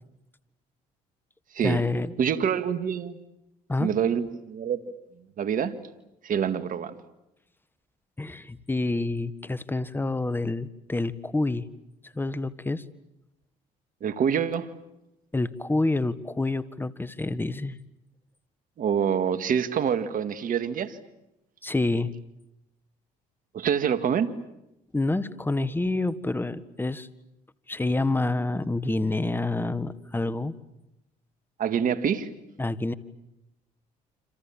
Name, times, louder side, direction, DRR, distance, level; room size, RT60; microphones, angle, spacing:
voice 1, 1.6-2.1 3.7-3.9 8.2-11.7 12.0-12.8 15.3-17.7 21.6-22.1 24.9-27.1 27.7-30.5 32.6-32.9, left 2 dB, 10° left, 14 dB, 1.6 m, -28 dB
voice 2, 2.2-3.2 3.8-4.8 5.4-5.7 6.2-6.9 14.0-14.7 18.8-21.0 23.5-24.3 31.6-32.3, right 8 dB, 50° right, 11 dB, 2.0 m, -26 dB
29.5 x 26.5 x 7.4 m, 0.88 s
supercardioid pair, 75°, 17 cm